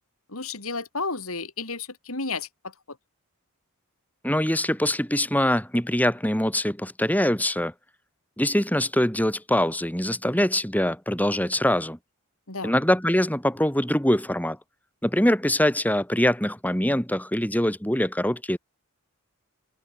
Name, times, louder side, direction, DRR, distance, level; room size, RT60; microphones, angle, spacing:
voice 1, 0.3-2.7 12.5-12.8, left 4 dB, 70° left, 4.6 m, -32 dB
voice 2, 4.2-7.7 8.4-12.0 12.6-14.6 15.0-18.6, left 1 dB, 5° left, 5.8 m, -23 dB
head